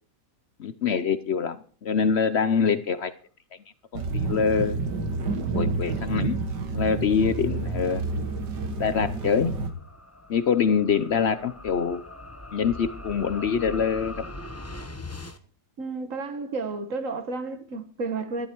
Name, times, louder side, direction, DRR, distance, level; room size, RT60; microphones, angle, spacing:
voice 1, 0.6-3.1 3.9-4.8 5.5-6.4 6.7-8.0 8.8-9.5 10.3-12.0 12.5-14.1, left 6 dB, 60° left, 0.6 m, -24 dB
sound 1, 3.9-9.7, right 3 dB, 75° right, 2.0 m, -29 dB
sound 2, 7.6-15.4, left 2 dB, 15° left, 0.5 m, -42 dB
voice 2, 15.8-18.5, right 3 dB, 50° right, 1.6 m, -32 dB
13.0 x 11.5 x 4.5 m
omnidirectional pair, 1.9 m